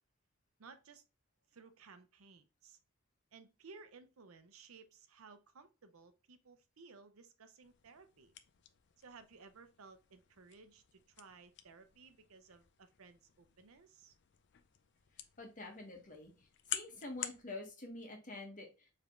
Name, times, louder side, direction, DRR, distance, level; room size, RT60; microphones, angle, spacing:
voice 1, 0.6-1.0 1.5-2.8 3.3-8.3 9.0-14.1, right 4 dB, 80° right, 0.6 m, -58 dB
sound 1, 7.6-17.4, left 11 dB, 55° left, 0.4 m, -50 dB
voice 2, 15.4-16.3 16.7-18.9, left 2 dB, 40° left, 1.4 m, -47 dB
4.8 x 3.3 x 2.5 m
head